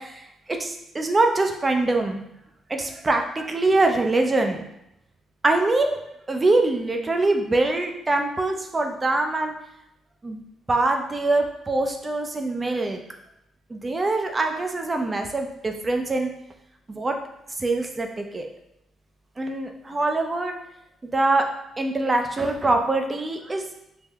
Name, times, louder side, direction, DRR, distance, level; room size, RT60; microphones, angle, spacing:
voice 1, 0.0-2.2 2.7-4.7 5.4-6.0 6.3-9.5 10.2-10.4 10.7-13.0 13.7-16.3 16.9-17.1 17.6-18.5 19.4-20.5 21.1-21.5 21.8-23.6, right 2 dB, 25° right, 4 dB, 0.5 m, -23 dB
3.4 x 2.1 x 3.4 m, 0.81 s
cardioid pair, 90°, 0 cm